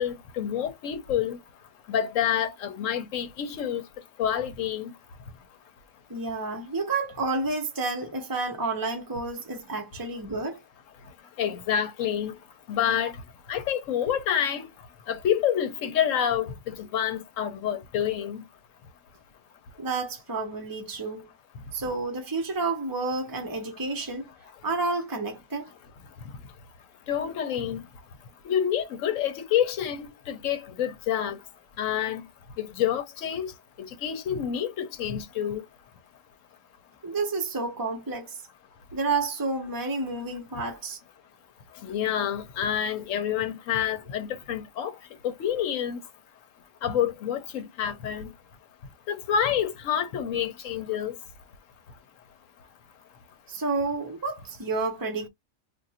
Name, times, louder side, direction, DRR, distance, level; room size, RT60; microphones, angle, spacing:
voice 1, 0.0-1.4 1.9-3.8 4.2-4.9 11.4-12.3 12.7-13.2 13.5-14.7 15.1-18.4 27.1-27.8 28.5-31.4 31.8-32.2 32.6-33.5 33.8-35.6 41.8-45.0 45.2-46.0 46.8-48.3 49.1-51.1, left 9 dB, 70° left, 1.1 m, -28 dB
voice 2, 6.1-10.6 19.8-21.3 21.7-24.3 24.6-25.7 37.0-38.4 38.9-41.0 53.5-55.3, right 3 dB, 15° right, 0.9 m, -30 dB
2.6 x 2.5 x 4.1 m
omnidirectional pair, 1.4 m